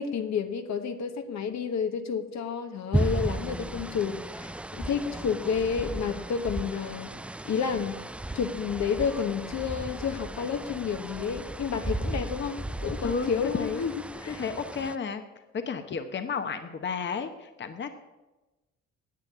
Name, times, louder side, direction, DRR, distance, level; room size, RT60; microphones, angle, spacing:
voice 1, 0.0-7.1 7.4-8.0 8.3-14.4, left 6 dB, 65° left, 7 dB, 1.2 m, -30 dB
sound 1, 2.9-15.0, right 1 dB, 5° right, 0.3 m, -35 dB
voice 2, 13.0-13.8 14.3-15.2 15.5-17.9, left 5 dB, 40° left, 8 dB, 1.0 m, -32 dB
10.5 x 8.4 x 8.3 m, 1.1 s
cardioid pair, 90°, 30 cm